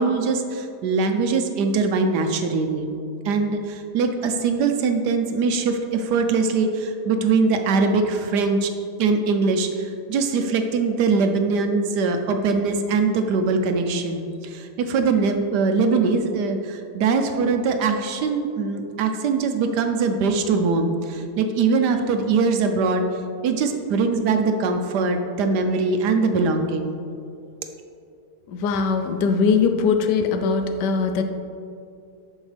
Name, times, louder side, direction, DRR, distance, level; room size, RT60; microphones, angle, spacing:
voice 1, 0.0-3.0 3.2-8.7 9.0-23.0 23.4-27.0, right 4 dB, 80° right, 6 dB, 1.3 m, -22 dB
voice 2, 28.5-31.2, left 5 dB, 80° left, 7 dB, 1.2 m, -21 dB
11.0 x 6.2 x 3.3 m, 2.5 s
omnidirectional pair, 1.8 m